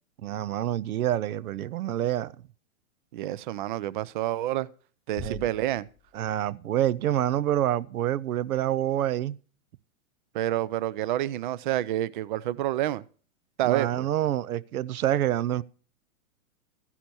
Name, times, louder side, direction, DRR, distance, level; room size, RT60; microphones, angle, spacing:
voice 1, 0.2-2.3 5.2-5.4 6.1-9.4 13.6-15.6, right 12 dB, 85° right, 0.7 m, -27 dB
voice 2, 3.1-4.7 5.1-5.9 10.3-13.0 13.6-14.1, right 13 dB, 35° right, 0.5 m, -28 dB
sound 1, 5.2-6.8, left 6 dB, 15° left, 0.5 m, -45 dB
14.0 x 10.0 x 4.4 m
hypercardioid pair, 145°, 43 cm